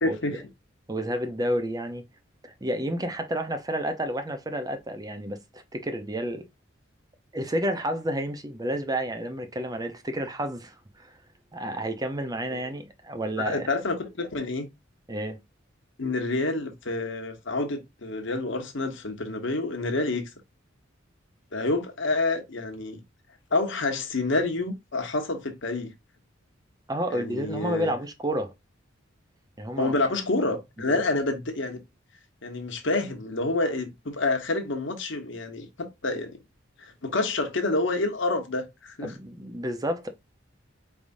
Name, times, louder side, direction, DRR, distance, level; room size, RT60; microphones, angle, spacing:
voice 1, 0.0-0.4 13.4-14.7 16.0-20.2 21.5-23.0 23.5-25.9 27.1-27.9 29.8-31.8 32.4-36.4 36.8-39.1, left 2 dB, 70° left, 1.1 m, -28 dB
voice 2, 0.9-2.0 2.4-6.4 7.3-11.2 11.5-13.7 15.1-15.4 26.9-28.5 29.6-29.9 30.8-31.0 39.0-40.1, right 1 dB, 20° right, 0.7 m, -30 dB
4.8 x 3.5 x 2.6 m
head